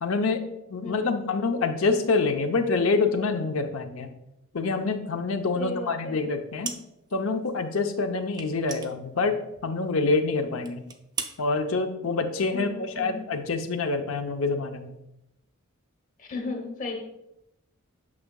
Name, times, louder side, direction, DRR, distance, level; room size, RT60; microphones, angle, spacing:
voice 1, 0.0-4.1 4.5-6.7 7.1-10.8 11.4-14.9, left 3 dB, 75° left, 6 dB, 0.7 m, -26 dB
voice 2, 0.8-1.2 5.5-6.2 12.5-13.2 16.2-17.0, left 3 dB, 35° left, 4 dB, 1.0 m, -35 dB
sound 1, 6.6-7.2 7.4-7.5 8.3-9.8 10.1-10.2 10.6-11.4, right 5 dB, 20° right, 0.4 m, -37 dB
8.5 x 6.4 x 2.3 m, 0.85 s
head